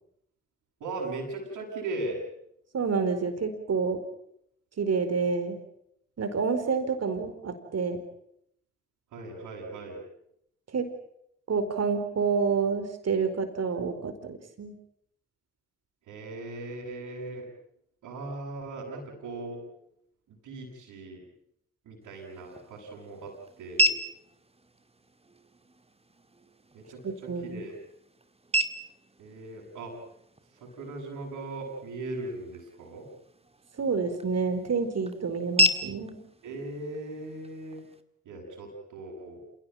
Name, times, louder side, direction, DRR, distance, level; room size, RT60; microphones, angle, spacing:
voice 1, 0.8-2.2 9.1-10.0 16.1-17.5 18.0-19.6 20.3-21.2 21.8-24.0 26.7-27.8 29.2-30.0 30.6-33.1 36.4-37.8 38.2-39.4, right 2 dB, 75° right, -6 dB, 7.6 m, -38 dB
voice 2, 2.7-4.0 4.8-5.6 6.2-8.0 10.7-10.9 11.5-14.7 27.0-27.6 33.8-36.2, right 5 dB, 55° right, 9 dB, 4.7 m, -28 dB
sound 1, 22.0-38.0, equal, 20° right, 2.4 m, -34 dB
28.5 x 17.5 x 9.2 m, 0.74 s
hypercardioid pair, 40°, 31 cm